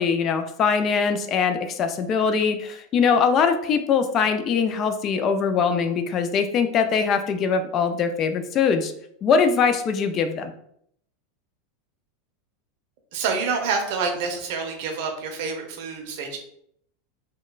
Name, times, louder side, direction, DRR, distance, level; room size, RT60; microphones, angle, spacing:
voice 1, 0.0-8.9 9.2-10.5, left 6 dB, 40° left, 8 dB, 0.3 m, -22 dB
voice 2, 13.1-16.4, right 5 dB, 60° right, 3 dB, 0.6 m, -27 dB
2.9 x 2.2 x 2.3 m, 0.70 s
hypercardioid pair, 95°, 0 cm